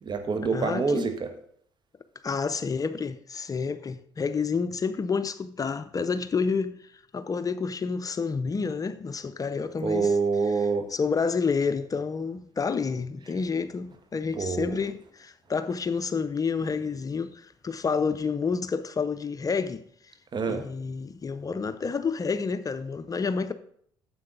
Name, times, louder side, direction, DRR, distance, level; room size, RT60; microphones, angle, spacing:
voice 1, 0.0-1.3 9.8-10.9 14.3-14.8 20.3-20.6, right 4 dB, 45° right, 1.4 m, -26 dB
voice 2, 0.5-1.1 2.2-6.7 7.1-10.2 10.9-19.8 20.5-23.5, left 5 dB, 35° left, 0.6 m, -29 dB
9.6 x 7.6 x 3.9 m
supercardioid pair, 60°, 11 cm